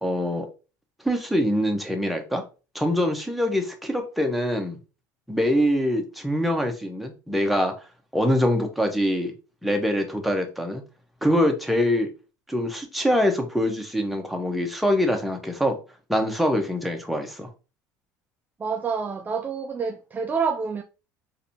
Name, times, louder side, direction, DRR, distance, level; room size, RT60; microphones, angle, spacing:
voice 1, 0.0-0.5 1.0-2.4 2.7-4.8 5.3-7.7 8.1-9.3 9.6-10.8 11.2-12.1 12.5-15.8 16.1-17.5, equal, ahead, 0.8 m, -24 dB
voice 2, 18.6-20.8, right 5 dB, 20° right, 0.3 m, -27 dB
4.0 x 2.7 x 2.7 m
hypercardioid pair, 80°, 9 cm